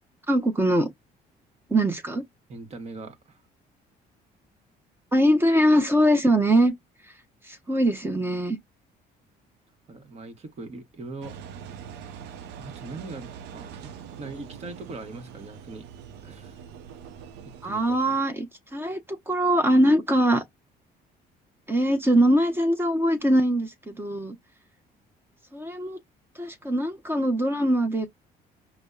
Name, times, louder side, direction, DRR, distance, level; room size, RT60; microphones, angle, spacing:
voice 1, 0.3-0.9 1.7-2.2 5.1-6.7 7.4-8.6 17.6-20.4 21.7-24.4 25.5-26.0 26.4-28.1, right 1 dB, 15° right, 0.8 m, -22 dB
voice 2, 2.5-3.4 9.9-11.3 12.6-15.9 16.2-16.6 17.7-18.0, right 3 dB, 40° right, 1.1 m, -41 dB
Engine, 11.2-18.2, right 8 dB, 85° right, 0.6 m, -43 dB
5.1 x 2.0 x 2.3 m
cardioid pair, 110°, 17 cm